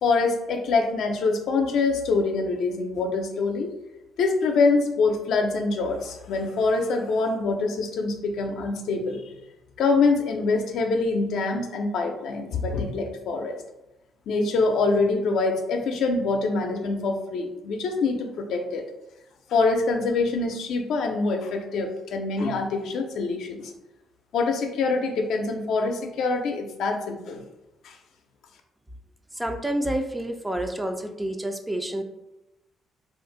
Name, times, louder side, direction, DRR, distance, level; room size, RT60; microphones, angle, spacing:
voice 1, 0.0-3.7 4.2-9.2 9.8-13.6 14.3-18.8 19.5-23.7 24.3-27.4 27.8-28.0, left 3 dB, 75° left, 3 dB, 0.5 m, -25 dB
voice 2, 29.4-32.0, right 1 dB, 10° right, 6 dB, 0.4 m, -28 dB
2.6 x 2.4 x 3.7 m, 0.95 s
cardioid pair, 90°, 0 cm